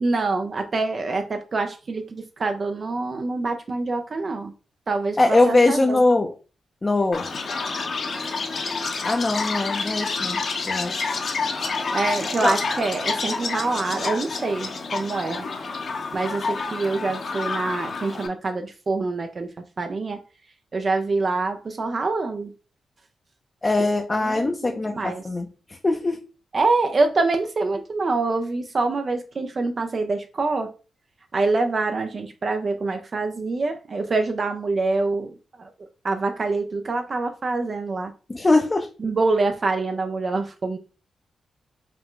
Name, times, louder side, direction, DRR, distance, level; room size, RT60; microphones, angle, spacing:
voice 1, 0.0-4.5 4.9-6.0 11.9-15.4 16.1-19.5 19.8-20.2 20.7-22.5 23.8-23.9 24.3-25.2 26.5-30.7 31.3-35.3 35.6-35.7 36.0-38.1 39.0-40.8, right 3 dB, 45° right, 6 dB, 0.5 m, -25 dB
voice 2, 5.2-6.3 6.8-7.2 9.0-11.1 12.4-12.6 23.6-26.2 38.3-38.9, left 2 dB, 30° left, 2 dB, 0.6 m, -21 dB
Chirp tweet, 7.1-18.3, left 4 dB, 60° left, 0.9 m, -28 dB
4.8 x 2.2 x 3.7 m, 0.34 s
cardioid pair, 70°, 0 cm